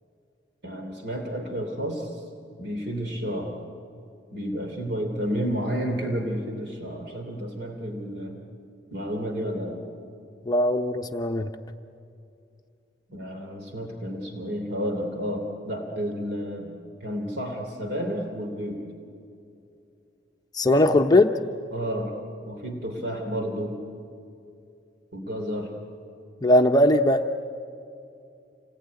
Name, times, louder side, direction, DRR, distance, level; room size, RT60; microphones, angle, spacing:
voice 1, 0.6-2.2 2.6-3.6 4.3-8.4 8.9-9.8 13.1-16.7 17.0-18.9 20.7-21.0 21.7-22.2 22.4-23.8 25.1-25.7, equal, 70° right, 3 dB, 3.1 m, -31 dB
voice 2, 10.5-11.5 20.5-21.3 26.4-27.3, left 1 dB, 20° left, 4 dB, 0.7 m, -20 dB
27.5 x 19.0 x 9.7 m, 2.5 s
head